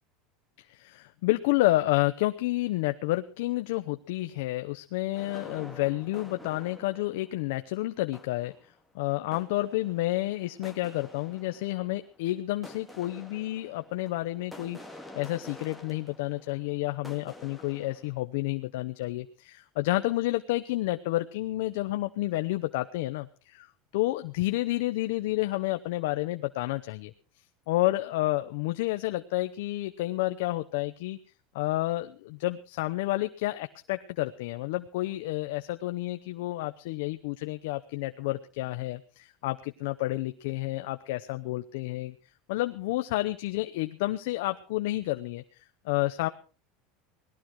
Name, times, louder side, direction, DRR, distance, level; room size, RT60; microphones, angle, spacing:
voice 1, 0.7-8.5 8.9-14.8 15.1-23.7 23.9-27.1 27.7-31.2 31.5-42.1 42.5-45.4 45.8-46.3, left 18 dB, 75° left, 8 dB, 0.8 m, -30 dB
sound 1, 5.1-7.4 8.0-8.8 9.3-18.2, left 1 dB, ahead, 2.1 m, -49 dB
18.5 x 13.0 x 4.6 m, 0.37 s
supercardioid pair, 150°, 0 cm